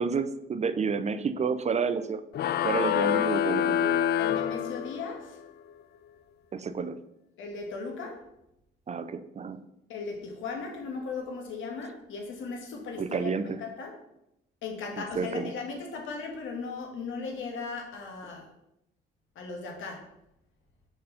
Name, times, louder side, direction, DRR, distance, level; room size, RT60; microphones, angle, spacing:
voice 1, 0.0-2.2 2.6-4.0 6.5-7.0 8.9-9.6 13.0-13.6 15.2-15.5, right 5 dB, 35° right, 11 dB, 0.5 m, -30 dB
sound 1, 2.3-5.2, left 11 dB, 55° left, 0.4 m, -26 dB
voice 2, 4.2-5.4 7.4-8.2 9.9-13.3 13.6-13.9 14.6-18.5 19.3-20.0, left 4 dB, 80° left, 1 dB, 1.7 m, -37 dB
5.0 x 4.6 x 5.5 m, 0.83 s
cardioid pair, 90°, 20 cm